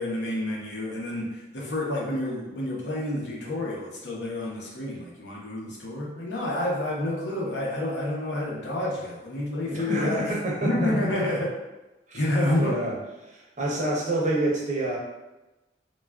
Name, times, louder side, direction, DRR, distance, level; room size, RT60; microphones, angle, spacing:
voice 1, 0.0-10.3 10.6-11.5 12.1-12.7, left 1 dB, 85° left, -3 dB, 0.8 m, -29 dB
voice 2, 9.7-10.9 12.1-12.3 12.6-13.0 13.2-15.0, right 1 dB, 45° right, -2 dB, 0.6 m, -27 dB
3.2 x 2.3 x 2.3 m, 1.0 s
head